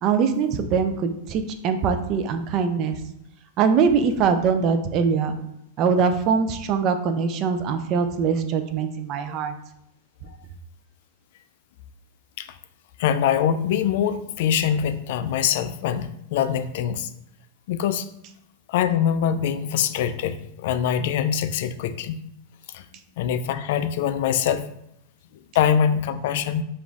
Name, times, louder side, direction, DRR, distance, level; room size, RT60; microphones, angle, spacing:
voice 1, 0.0-3.0 3.6-5.3 5.8-9.5, right 6 dB, 45° right, 7 dB, 0.5 m, -22 dB
voice 2, 13.0-17.1 17.7-18.1 18.7-22.2 22.7-22.8 23.2-24.7 25.5-26.6, left 9 dB, 65° left, 12 dB, 0.3 m, -23 dB
5.0 x 2.5 x 3.4 m, 0.77 s
hypercardioid pair, 120°, 0 cm